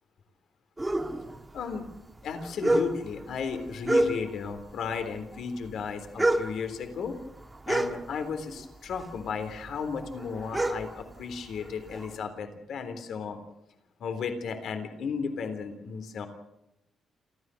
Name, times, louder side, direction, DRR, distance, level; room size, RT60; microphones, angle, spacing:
sound 1, 0.8-4.6 4.9-8.6 8.9-12.1, right 1 dB, 15° right, 1.8 m, -29 dB
voice 1, 1.5-1.9 2.2-7.2 7.7-13.4 14.0-16.3, left 5 dB, 70° left, 8 dB, 3.6 m, -34 dB
28.5 x 14.0 x 7.8 m, 0.89 s
cardioid pair, 125°, 0 cm